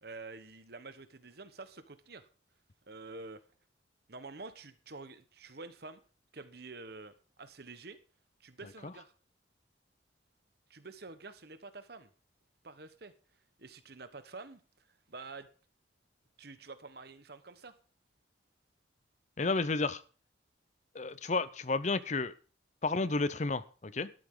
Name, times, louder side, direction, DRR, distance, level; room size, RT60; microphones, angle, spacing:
voice 1, 0.0-2.3 2.9-3.4 4.1-6.0 6.3-8.0 8.4-9.1 10.7-12.1 12.6-13.1 13.6-15.5 16.4-17.7, right 3 dB, 55° right, 11 dB, 1.2 m, -48 dB
voice 2, 19.4-20.0 20.9-22.3 22.8-24.1, left 3 dB, 40° left, 16 dB, 0.6 m, -31 dB
13.0 x 12.0 x 3.8 m, 0.38 s
head